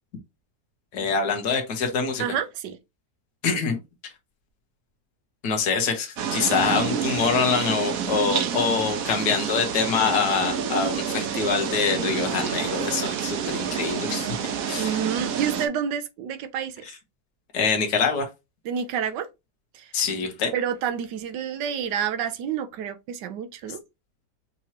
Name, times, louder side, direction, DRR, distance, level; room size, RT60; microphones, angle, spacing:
voice 1, 0.9-2.4 3.4-4.1 5.4-14.4 14.7-15.0 17.5-18.3 19.9-20.5, left 5 dB, 75° left, 1.7 m, -25 dB
voice 2, 2.2-2.8 14.8-16.8 18.6-19.3 19.7-19.9 20.5-23.8, right 8 dB, 90° right, 1.3 m, -29 dB
sound 1, 6.2-15.7, right 8 dB, 60° right, 1.1 m, -28 dB
6.1 x 3.0 x 2.8 m
omnidirectional pair, 1.8 m